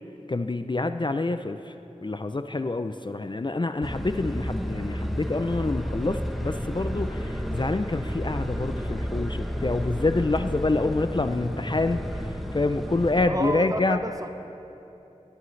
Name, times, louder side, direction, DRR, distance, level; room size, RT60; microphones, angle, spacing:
voice 1, 0.3-1.7 2.0-14.0, left 2 dB, 40° left, 9 dB, 0.4 m, -27 dB
sound 1, 3.8-13.2, equal, ahead, 0.9 m, -31 dB
voice 2, 13.3-14.3, right 1 dB, 30° right, 7 dB, 0.7 m, -30 dB
19.5 x 11.5 x 3.2 m, 3.0 s
wide cardioid pair, 50°, 13 cm